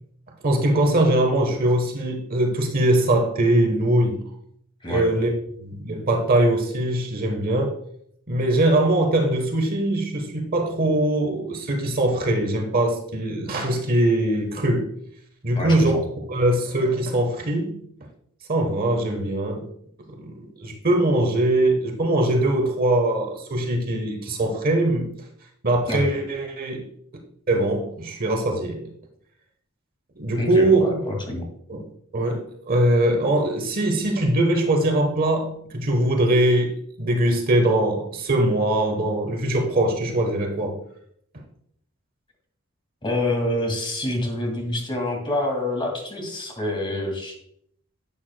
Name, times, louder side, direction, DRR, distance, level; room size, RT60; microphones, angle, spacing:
voice 1, 0.4-4.2 4.9-5.3 5.6-7.8 8.3-14.9 15.4-16.0 16.3-17.8 18.5-19.7 20.1-25.1 25.6-26.9 27.5-28.8 30.2-30.9 31.7-31.9 32.1-36.7 37.0-40.8, right 1 dB, 45° right, 3 dB, 1.1 m, -22 dB
voice 2, 15.6-15.9 25.9-26.0 30.3-31.4 43.0-47.3, left 1 dB, 25° left, 1 dB, 2.1 m, -27 dB
10.5 x 8.3 x 2.2 m, 0.68 s
head